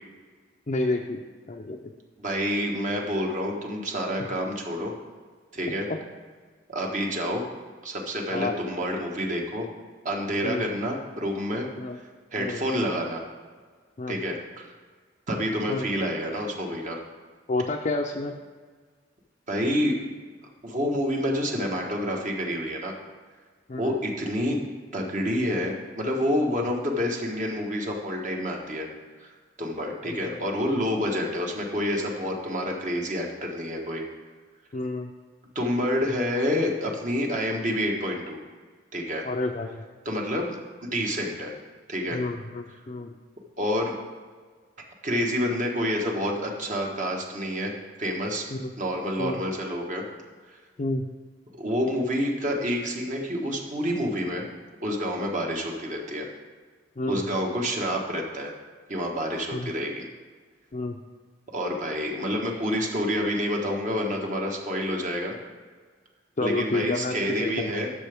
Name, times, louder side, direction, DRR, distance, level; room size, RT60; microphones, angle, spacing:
voice 1, 0.7-1.8 5.9-6.0 8.3-8.5 10.4-10.7 11.8-12.0 12.4-12.6 14.0-14.2 15.7-15.8 17.5-18.4 23.7-23.9 30.0-30.3 34.7-35.1 39.2-39.8 42.1-43.2 48.5-48.7 49.2-49.3 50.8-51.1 57.0-57.2 59.5-59.7 60.7-61.0 66.4-67.8, left 2 dB, 40° left, 0 dB, 0.5 m, -30 dB
voice 2, 2.2-4.9 5.5-5.9 6.7-7.4 7.8-9.7 10.0-11.7 12.3-13.2 14.1-14.7 15.3-17.0 19.5-19.9 20.6-22.9 23.8-24.6 24.9-28.9 29.6-34.0 35.5-38.4 38.9-39.2 40.0-41.5 41.9-42.2 43.6-43.9 45.0-47.7 48.0-48.5 48.8-50.0 51.6-54.4 54.8-56.3 57.1-58.5 58.9-60.1 61.5-65.3 66.4-67.9, equal, 45° right, 0 dB, 1.4 m, -28 dB
11.5 x 6.8 x 3.5 m, 1.5 s
head